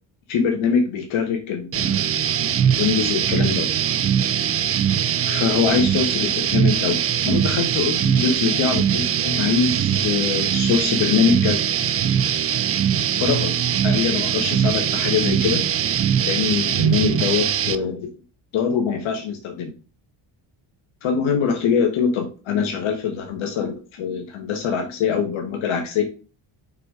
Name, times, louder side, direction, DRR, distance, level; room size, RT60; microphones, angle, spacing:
voice 1, 0.3-3.7 5.2-11.6 13.2-13.6 13.8-15.6 16.3-18.1 18.5-19.7 21.0-26.0, left 6 dB, 75° left, 3 dB, 1.4 m, -23 dB
sound 1, 1.7-17.8, right 9 dB, 35° right, 0.4 m, -21 dB
5.5 x 3.9 x 4.7 m, 0.34 s
cardioid pair, 125°, 47 cm